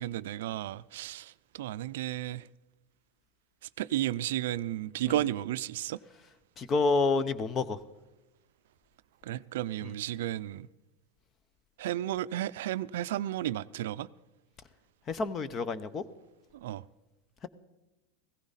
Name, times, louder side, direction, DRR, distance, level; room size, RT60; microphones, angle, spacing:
voice 1, 0.0-2.5 3.8-6.0 9.2-10.7 11.8-14.1 16.5-16.9, right 13 dB, 80° right, 0.4 m, -33 dB
voice 2, 6.6-7.8 15.1-16.0, left 3 dB, 30° left, 0.8 m, -28 dB
16.0 x 14.5 x 4.1 m
supercardioid pair, 135°, 0 cm